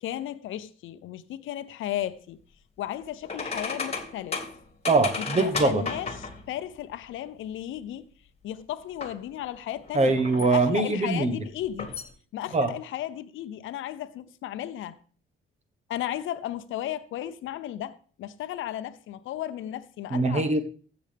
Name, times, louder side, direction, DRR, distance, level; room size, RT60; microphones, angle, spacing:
voice 1, 0.0-2.4 2.8-4.4 5.2-8.1 8.4-10.2 10.5-11.9 12.3-15.0 15.9-20.5, left 12 dB, 80° left, 0.7 m, -34 dB
sound 1, 3.2-6.5 9.0-9.2 9.7-10.6 11.6-12.1, left 4 dB, 30° left, 2.0 m, -34 dB
voice 2, 4.9-5.8 9.9-11.4 12.5-12.7 20.1-20.6, right 3 dB, 35° right, 1.3 m, -23 dB
15.0 x 7.0 x 3.5 m
cardioid pair, 90°, 20 cm